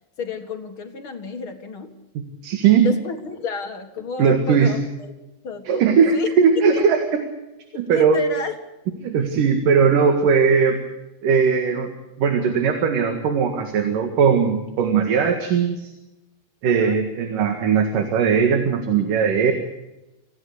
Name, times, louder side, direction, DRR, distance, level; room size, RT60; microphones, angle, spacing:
voice 1, 0.2-1.9 2.8-5.1 5.4-5.9 6.1-6.3 6.7-6.9 7.9-8.5 16.6-17.0, left 4 dB, 45° left, 5 dB, 2.0 m, -31 dB
voice 2, 2.1-2.9 4.2-4.7 5.7-7.0 7.7-8.2 9.0-10.8 11.2-11.9 12.2-15.9 16.6-19.5, right 6 dB, 65° right, 6 dB, 3.3 m, -19 dB
25.5 x 16.5 x 8.0 m, 0.99 s
omnidirectional pair, 4.4 m